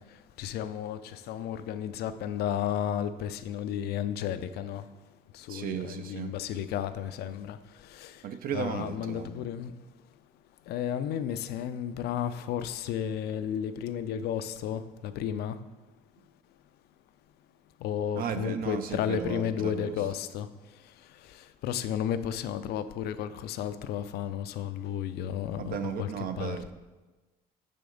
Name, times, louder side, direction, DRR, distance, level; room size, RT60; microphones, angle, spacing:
voice 1, 0.4-4.8 5.5-7.6 8.0-8.1 8.5-9.7 10.7-15.6 17.8-20.5 21.6-26.1 26.4-26.7, left 9 dB, 70° left, 12 dB, 0.4 m, -33 dB
voice 2, 5.5-6.3 8.2-9.3 18.1-20.0 25.6-26.7, right 8 dB, 60° right, 9 dB, 0.5 m, -35 dB
5.9 x 5.0 x 3.8 m, 1.2 s
cardioid pair, 110°, 17 cm